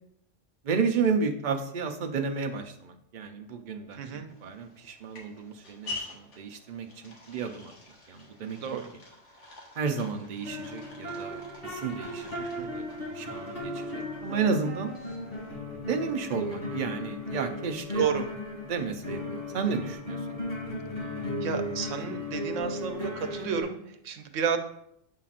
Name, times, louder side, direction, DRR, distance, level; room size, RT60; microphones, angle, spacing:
voice 1, 0.6-4.0 4.4-7.7 8.1-8.6 9.8-12.8 13.1-14.9 15.9-18.1 18.6-20.4, right 5 dB, 50° right, 5 dB, 0.7 m, -32 dB
voice 2, 4.0-4.3 8.6-8.9 12.4-12.7 17.9-18.3 21.4-24.6, right 7 dB, 85° right, 6 dB, 1.0 m, -31 dB
sound 1, 4.3-15.5, left 3 dB, 75° left, 1.6 m, -47 dB
sound 2, 10.4-23.6, left 1 dB, 50° left, 2.8 m, -36 dB
8.3 x 5.6 x 2.5 m, 0.73 s
omnidirectional pair, 1.3 m